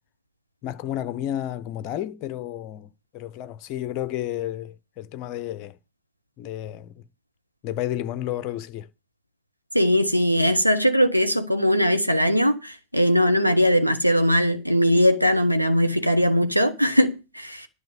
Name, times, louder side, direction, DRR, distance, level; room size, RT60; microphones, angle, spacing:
voice 1, 0.6-2.9 3.1-5.8 6.4-6.9 7.6-8.9, left 12 dB, 40° left, 0.6 m, -31 dB
voice 2, 9.7-17.7, equal, 90° right, 0.8 m, -20 dB
10.5 x 6.4 x 7.1 m
figure-of-eight pair, 90°, 0 cm